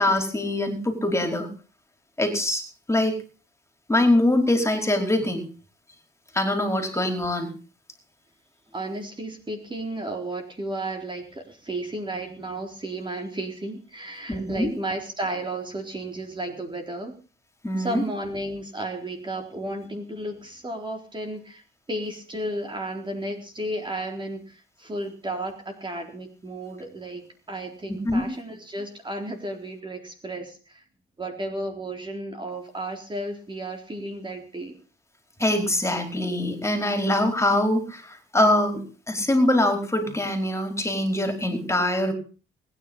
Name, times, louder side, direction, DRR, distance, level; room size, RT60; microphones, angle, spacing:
voice 1, 0.0-1.5 2.2-2.6 2.9-3.1 3.9-5.4 6.3-7.5 14.3-14.7 17.6-18.0 27.9-28.3 35.4-38.8 39.1-42.1, left 1 dB, 15° left, 5 dB, 4.8 m, -23 dB
voice 2, 8.7-17.1 17.8-21.6 21.9-30.8 31.2-34.7, right 1 dB, 25° right, 4 dB, 4.0 m, -33 dB
21.0 x 10.0 x 5.5 m, 0.38 s
cardioid pair, 90°, 20 cm